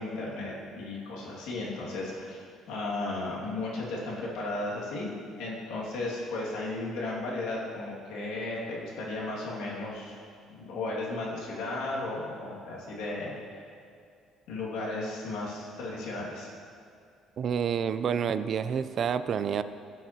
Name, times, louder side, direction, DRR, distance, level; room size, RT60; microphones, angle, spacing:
voice 1, 0.0-2.4 2.7-5.1 5.4-10.2 10.5-13.3 14.5-16.5, left 2 dB, 85° left, -5 dB, 2.0 m, -35 dB
voice 2, 17.4-19.6, right 7 dB, 45° right, 12 dB, 0.3 m, -28 dB
15.0 x 6.1 x 2.8 m, 2.3 s
cardioid pair, 135°, 0 cm